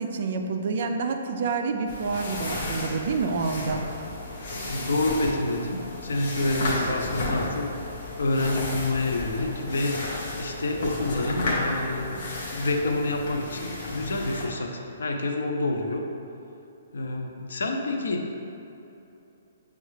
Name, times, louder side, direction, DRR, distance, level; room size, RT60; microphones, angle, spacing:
voice 1, 0.0-3.8, right 4 dB, 45° right, 5 dB, 0.3 m, -28 dB
sound 1, 1.9-14.4, left 2 dB, 40° left, 0.7 m, -33 dB
voice 2, 4.5-7.7 8.2-10.0 10.4-12.2 12.5-16.0 16.9-18.2, left 2 dB, 85° left, 3 dB, 0.5 m, -28 dB
6.3 x 2.3 x 3.2 m, 2.8 s
hypercardioid pair, 175°, 0 cm